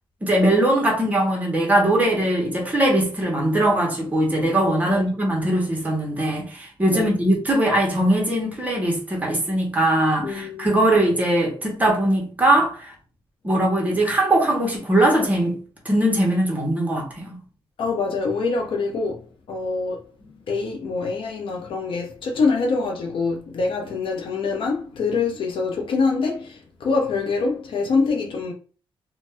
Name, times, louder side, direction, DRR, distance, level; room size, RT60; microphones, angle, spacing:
voice 1, 0.2-12.9 13.4-15.6 15.8-17.4, right 1 dB, 15° right, 1.0 m, -21 dB
voice 2, 10.2-10.8 17.8-20.1 20.5-28.5, left 4 dB, 65° left, 0.6 m, -25 dB
2.6 x 2.2 x 3.3 m
wide cardioid pair, 155°, 10 cm